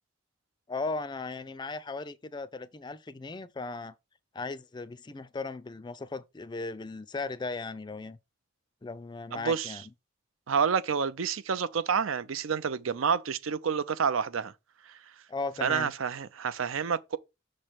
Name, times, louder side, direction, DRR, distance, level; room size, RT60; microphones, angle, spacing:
voice 1, 0.7-3.9 4.3-8.2 8.8-9.8 15.3-15.9, left 3 dB, 20° left, 0.4 m, -37 dB
voice 2, 9.3-9.8 10.5-14.5 14.9-15.0 15.6-17.2, right 6 dB, 85° right, 0.5 m, -29 dB
6.2 x 3.2 x 5.8 m
head